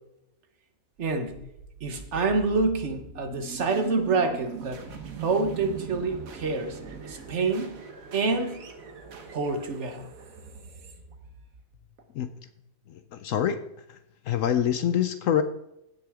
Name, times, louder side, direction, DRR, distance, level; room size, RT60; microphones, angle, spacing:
voice 1, 1.0-1.4 1.8-4.8 5.2-6.8 7.0-7.8 8.1-8.7 9.3-10.1, right 3 dB, 55° right, 6 dB, 1.4 m, -27 dB
sound 1, 1.2-12.0, right 6 dB, 70° right, 1.5 m, -42 dB
voice 2, 13.2-13.6 14.3-15.4, left 9 dB, 70° left, 10 dB, 0.9 m, -24 dB
16.0 x 6.1 x 3.6 m, 0.84 s
omnidirectional pair, 1.5 m